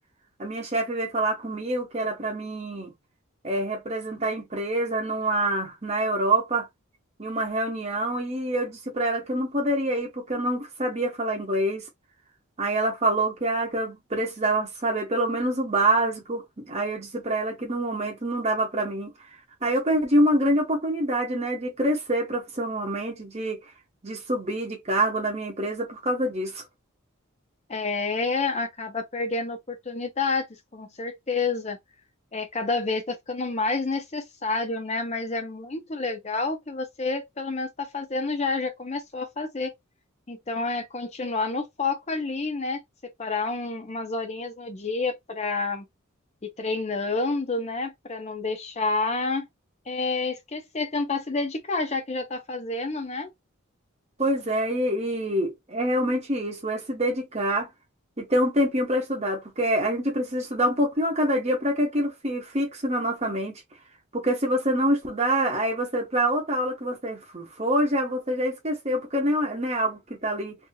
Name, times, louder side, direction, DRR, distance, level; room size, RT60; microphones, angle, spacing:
voice 1, 0.4-2.9 3.4-6.7 7.2-11.9 12.6-19.1 19.6-23.6 24.0-26.6 54.2-57.7 58.2-63.5 64.1-70.6, right 1 dB, 30° right, 0.9 m, -26 dB
voice 2, 27.7-31.8 32.3-39.7 40.3-45.9 46.4-49.5 49.9-53.3, left 3 dB, 30° left, 0.6 m, -29 dB
2.7 x 2.4 x 2.7 m
head